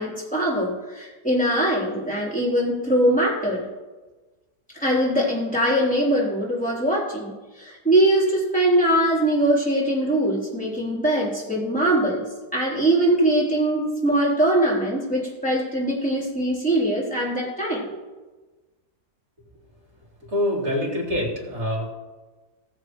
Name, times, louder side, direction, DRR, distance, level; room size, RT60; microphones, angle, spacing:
voice 1, 0.0-3.7 4.8-17.9, right 1 dB, 5° left, -6 dB, 3.7 m, -22 dB
voice 2, 20.3-21.9, left 1 dB, 55° right, -4 dB, 4.3 m, -25 dB
19.5 x 7.4 x 3.2 m, 1.2 s
omnidirectional pair, 1.7 m